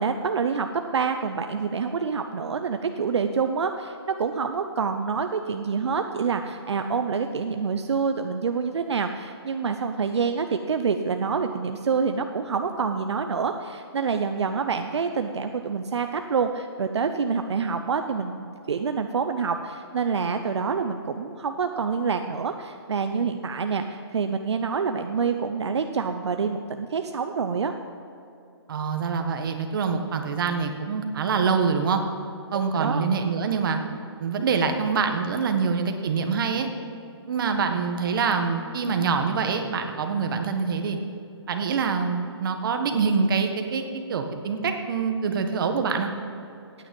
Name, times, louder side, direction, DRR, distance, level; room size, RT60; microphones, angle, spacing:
voice 1, 0.0-27.7 32.5-33.0, right 5 dB, 80° right, 7 dB, 0.7 m, -27 dB
voice 2, 28.7-32.0 32.5-33.8 34.2-36.7 37.3-41.0 41.5-43.8 44.1-46.1, right 5 dB, 55° right, 6 dB, 1.5 m, -25 dB
15.5 x 9.4 x 5.3 m, 2.6 s
hypercardioid pair, 155°, 14 cm